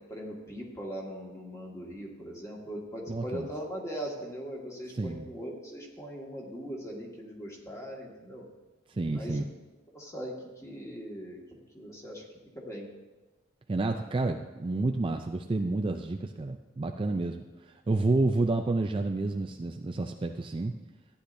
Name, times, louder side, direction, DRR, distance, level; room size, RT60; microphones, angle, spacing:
voice 1, 0.0-8.4 9.1-9.5 9.9-11.4 11.7-12.3 12.6-12.9, equal, 15° left, -2 dB, 1.8 m, -40 dB
voice 2, 3.1-3.5 4.9-5.3 8.9-9.5 13.7-20.7, right 2 dB, 25° right, 5 dB, 0.4 m, -30 dB
14.5 x 10.0 x 2.6 m, 1.2 s
head